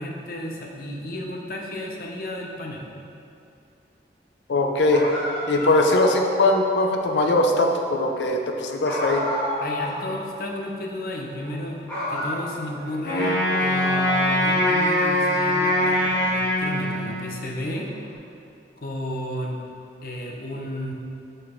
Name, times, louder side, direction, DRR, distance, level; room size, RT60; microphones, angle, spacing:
voice 1, 0.0-2.8 9.6-17.9 18.8-19.6 20.0-20.9, left 1 dB, 55° left, 0 dB, 0.7 m, -33 dB
voice 2, 4.5-5.0 5.5-9.2, left 2 dB, 90° left, 3 dB, 0.5 m, -21 dB
sound 1, 4.9-6.7 8.8-10.0 10.3-10.4 11.3-11.6 11.9-12.9 13.3-14.5, equal, 10° left, 1.5 m, -31 dB
Wind instrument woodwind instrument, 13.0-17.4, left 1 dB, 70° left, 1.5 m, -22 dB
5.3 x 4.1 x 4.4 m, 2.5 s
head